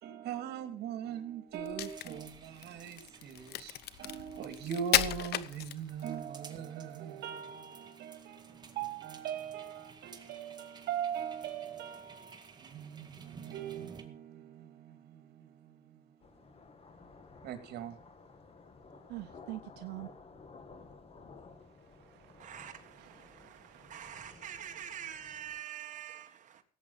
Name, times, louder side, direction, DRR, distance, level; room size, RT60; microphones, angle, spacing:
voice 1, 0.0-16.3 17.4-18.0, right 9 dB, 75° right, 2.5 m, -41 dB
Crack, 1.6-6.2, left 13 dB, 70° left, 0.9 m, -34 dB
sound 1, 1.8-14.0, right 5 dB, 25° right, 2.1 m, -56 dB
sound 2, 16.2-25.6, left 4 dB, 35° left, 2.2 m, -55 dB
voice 2, 19.1-20.1 21.7-24.9, right 18 dB, 90° right, 0.7 m, -48 dB
voice 3, 22.4-26.6, right 9 dB, 50° right, 1.7 m, -46 dB
17.0 x 8.2 x 5.6 m
cardioid pair, 110°, 17 cm